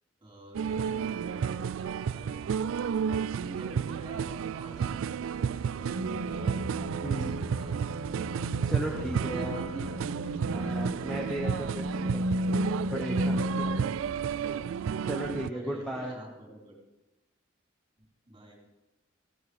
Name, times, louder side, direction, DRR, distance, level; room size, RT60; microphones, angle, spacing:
voice 1, 0.2-2.5 3.4-6.9 7.2-8.1 8.9-11.1 15.5-16.8 18.0-18.6, right 1 dB, 25° right, -2 dB, 3.6 m, -47 dB
sound 1, 0.5-15.5, right 7 dB, 70° right, 0.3 m, -32 dB
voice 2, 0.9-1.2 7.0-7.4 8.6-9.6 10.5-12.3 12.9-13.7 15.1-16.2, right 1 dB, 5° left, -2 dB, 1.0 m, -36 dB
sound 2, 5.9-14.0, equal, 90° right, 1.1 m, -33 dB
15.5 x 8.7 x 4.9 m, 1.0 s
head